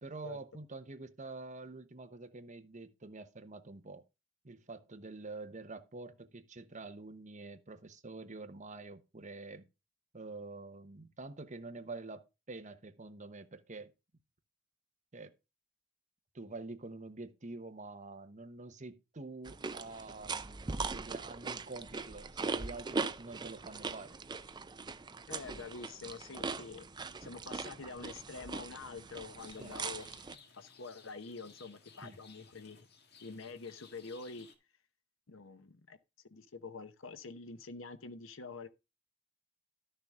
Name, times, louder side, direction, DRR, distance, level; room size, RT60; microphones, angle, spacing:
voice 1, 0.0-4.0 4.4-9.7 10.1-13.9 15.1-15.3 16.3-24.2 29.6-29.8 32.0-32.2, right 3 dB, 35° right, 1.1 m, -47 dB
sound 1, 19.4-30.4, right 4 dB, 20° right, 0.5 m, -40 dB
voice 2, 25.3-30.1 30.6-32.9 33.2-34.5 35.3-36.0 36.3-38.7, left 4 dB, 70° left, 0.9 m, -46 dB
Rain, 29.4-34.6, left 5 dB, 55° left, 1.7 m, -59 dB
12.0 x 6.7 x 3.6 m
head